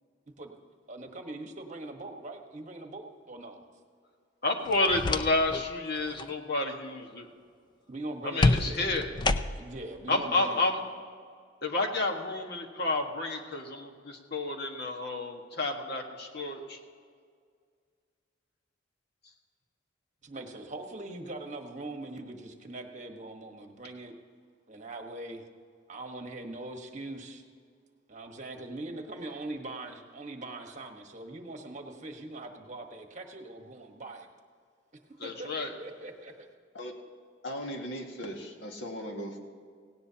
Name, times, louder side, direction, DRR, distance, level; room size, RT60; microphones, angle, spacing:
voice 1, 0.9-3.6 7.9-8.9 9.5-10.6 20.2-24.1 24.7-25.4 25.9-27.4 28.1-34.3 35.2-36.5, right 2 dB, 40° right, 4 dB, 1.3 m, -41 dB
voice 2, 4.4-7.3 8.2-9.1 10.1-10.8 11.6-16.8 35.2-35.7, left 2 dB, 60° left, 2 dB, 1.5 m, -30 dB
sound 1, 4.6-5.7 6.0-6.3 8.4-9.8, left 2 dB, 25° left, 0.4 m, -28 dB
voice 3, 37.4-39.4, equal, 85° left, 2 dB, 1.9 m, -38 dB
17.5 x 17.0 x 2.9 m, 2.1 s
head